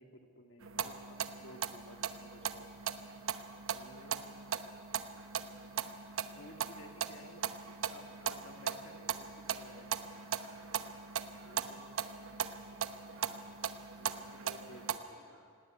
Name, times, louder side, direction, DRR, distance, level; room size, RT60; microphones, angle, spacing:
voice 1, 0.0-2.7 3.7-4.3 6.3-10.3 11.4-11.9 14.0-15.4, left 1 dB, 60° left, 4 dB, 2.0 m, -55 dB
sound 1, 0.6-15.0, right 7 dB, 75° right, 0.9 m, -39 dB
voice 2, 10.2-10.7 11.3-13.5 14.2-15.4, right 1 dB, 55° right, -3 dB, 6.9 m, -63 dB
18.0 x 17.5 x 9.7 m, 2.2 s
head